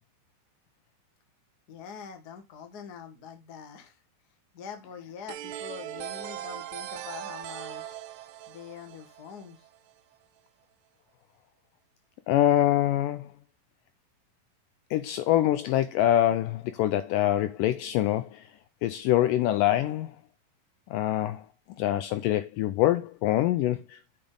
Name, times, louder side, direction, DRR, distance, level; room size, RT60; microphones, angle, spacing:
voice 1, 1.7-4.0 4.5-8.0 8.5-9.7, left 7 dB, 55° left, 1.1 m, -44 dB
sound 1, 5.3-9.9, right 11 dB, 80° right, 1.7 m, -39 dB
voice 2, 12.3-13.3 14.9-18.5 18.8-20.1 20.9-21.4 21.8-24.0, left 13 dB, 80° left, 2.0 m, -25 dB
7.4 x 7.0 x 3.7 m
omnidirectional pair, 4.3 m